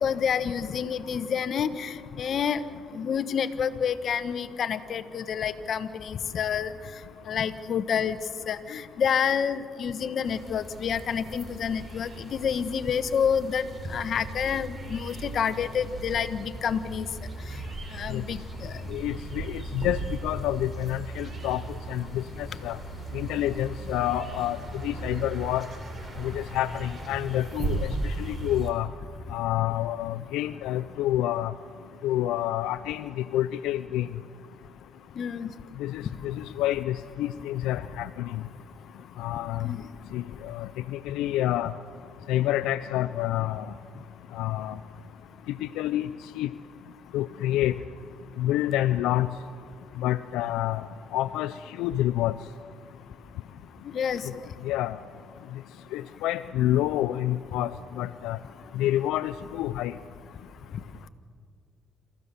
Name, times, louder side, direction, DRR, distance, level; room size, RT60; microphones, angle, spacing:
voice 1, 0.0-2.6 2.9-6.7 7.3-8.2 8.5-13.6 13.9-17.0 17.9-18.7 23.5-23.6 35.2-35.5 39.6-39.8 53.8-54.4, left 7 dB, 60° left, 11 dB, 1.1 m, -28 dB
sound 1, 10.2-28.7, right 2 dB, 35° right, 3.7 m, -37 dB
voice 2, 18.9-21.6 21.9-22.8 23.1-25.7 26.2-28.9 29.3-31.5 32.0-34.1 35.8-38.4 39.2-39.7 40.1-41.7 42.3-43.7 44.3-44.8 45.6-46.5 47.1-47.8 48.4-49.3 50.0-50.9 51.1-52.3 54.6-55.0 55.9-57.7 58.0-58.4 58.7-59.9, left 13 dB, 90° left, 12 dB, 0.4 m, -28 dB
27.5 x 14.5 x 6.9 m, 2.2 s
cardioid pair, 85°, 0 cm